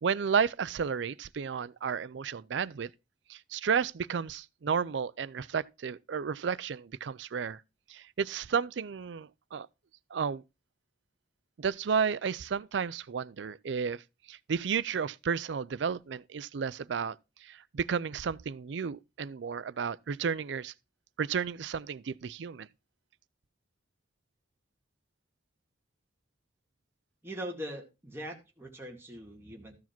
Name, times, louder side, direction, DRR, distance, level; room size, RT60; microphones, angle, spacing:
voice 1, 0.0-2.9 3.3-7.6 7.9-9.7 10.1-10.4 11.6-14.0 14.3-17.2 17.4-20.7 21.2-22.7, right 6 dB, 75° right, 0.4 m, -32 dB
voice 2, 27.2-29.7, equal, 15° right, 2.2 m, -41 dB
13.5 x 4.8 x 5.9 m
head